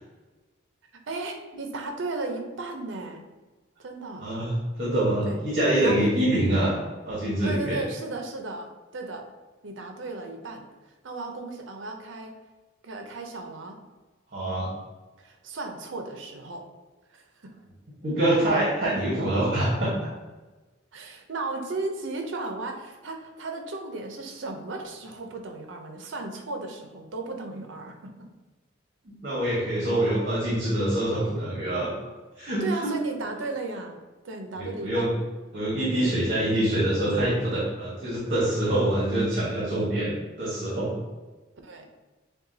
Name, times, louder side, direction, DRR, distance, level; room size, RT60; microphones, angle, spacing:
voice 1, 1.1-3.2 3.8-4.3 5.2-5.4 5.8-6.1 7.4-9.2 9.6-10.6 11.0-12.3 12.8-13.8 15.2-16.6 17.1-17.5 20.9-28.1 32.6-34.0 34.2-35.1 41.6-41.9, right 3 dB, 80° right, 4 dB, 0.6 m, -35 dB
voice 2, 4.8-6.7 7.0-7.8 14.3-14.7 18.0-19.9 29.0-31.9 32.4-32.6 34.6-35.1 35.5-40.1 40.4-41.0, right 1 dB, 45° right, -7 dB, 1.2 m, -25 dB
6.7 x 2.3 x 2.7 m, 1.2 s
head